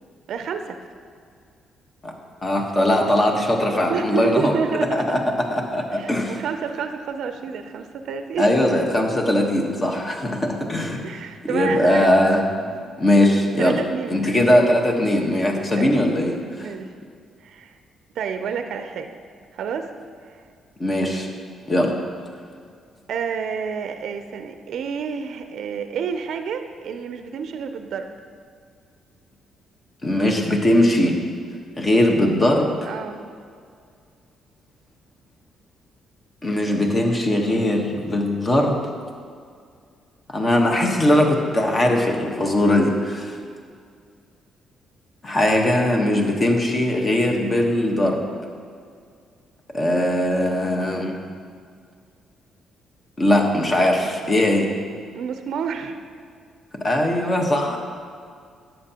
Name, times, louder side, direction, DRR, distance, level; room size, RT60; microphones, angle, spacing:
voice 1, 0.3-0.8 3.9-5.2 5.9-8.5 9.8-9.9 11.0-12.1 12.6-13.0 13.6-14.3 15.8-15.9 16.6-16.9 17.4-17.8 18.2-19.1 19.5-19.9 20.2-20.4 23.1-28.1 32.8-33.3 55.1-56.0, right 6 dB, 70° right, 7 dB, 0.4 m, -29 dB
voice 2, 2.4-4.5 4.9-5.2 5.5-6.4 8.4-11.0 11.5-12.4 13.0-13.8 14.1-16.7 20.8-21.3 21.7-21.9 30.0-31.2 31.8-32.8 36.4-38.8 40.3-43.4 45.2-48.2 49.7-51.2 53.2-54.7 56.8-57.8, left 1 dB, 30° left, 2 dB, 1.1 m, -20 dB
11.0 x 7.0 x 2.9 m, 2.2 s
cardioid pair, 90°, 0 cm